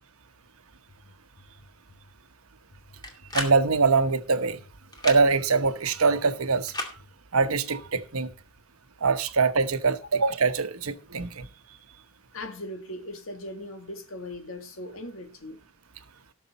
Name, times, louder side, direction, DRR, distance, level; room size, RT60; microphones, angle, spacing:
sound 1, 0.7-2.2 2.7-4.1 4.6-4.9 5.4-7.5 7.8-8.4, left 2 dB, 50° left, 3.3 m, -55 dB
sound 2, 3.0-3.6 4.9-5.2 6.7-6.9, left 2 dB, 20° left, 2.3 m, -32 dB
voice 1, 3.3-4.6 5.0-6.7 7.3-8.3 9.0-11.5, right 4 dB, 80° right, 1.0 m, -23 dB
voice 2, 12.3-15.6, left 1 dB, 65° left, 1.8 m, -39 dB
17.5 x 6.6 x 4.1 m
head